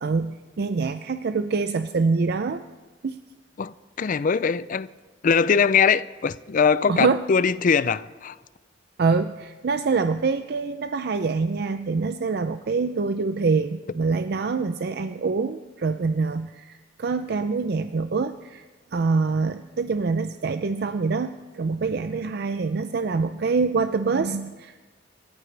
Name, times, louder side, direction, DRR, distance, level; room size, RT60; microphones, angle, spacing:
voice 1, 0.0-2.6 3.0-3.2 6.9-7.2 9.0-18.6 18.9-24.9, right 4 dB, 60° right, 0.5 m, -25 dB
voice 2, 3.6-4.9 5.2-8.4, left 6 dB, 45° left, 0.4 m, -21 dB
26.5 x 14.0 x 3.3 m
head